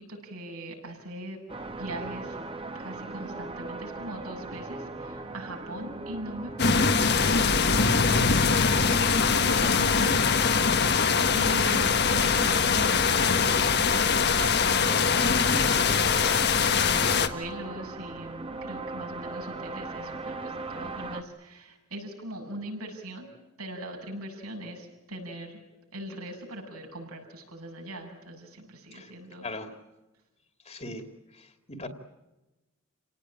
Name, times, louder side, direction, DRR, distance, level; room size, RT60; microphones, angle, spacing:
voice 1, 0.0-1.4 1.8-2.4 2.8-16.3 16.7-23.3 23.6-25.6 25.9-29.5, right 1 dB, 85° right, 1 dB, 7.8 m, -40 dB
sound 1, 1.5-21.2, right 2 dB, 25° right, 1.6 m, -40 dB
sound 2, 6.6-17.3, left 5 dB, 50° left, 1.5 m, -23 dB
voice 2, 29.4-29.7 30.7-31.1 31.3-31.9, left 2 dB, 30° left, 7 dB, 2.5 m, -39 dB
29.5 x 18.5 x 8.8 m, 1.0 s
head